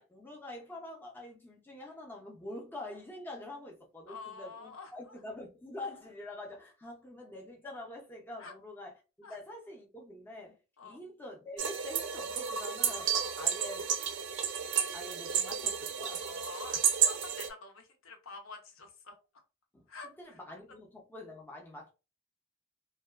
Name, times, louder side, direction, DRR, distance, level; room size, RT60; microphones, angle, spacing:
voice 1, 0.0-8.9 9.2-10.6 10.8-13.9 14.9-16.2 19.7-21.9, left 1 dB, 10° left, 0.4 m, -46 dB
voice 2, 4.1-5.2 8.4-8.5 9.2-9.4 10.8-11.0 13.2-13.4 16.2-19.2 19.9-20.4, left 4 dB, 65° left, 0.6 m, -48 dB
sound 1, 11.6-17.5, right 8 dB, 55° right, 0.4 m, -32 dB
2.6 x 2.2 x 2.2 m
head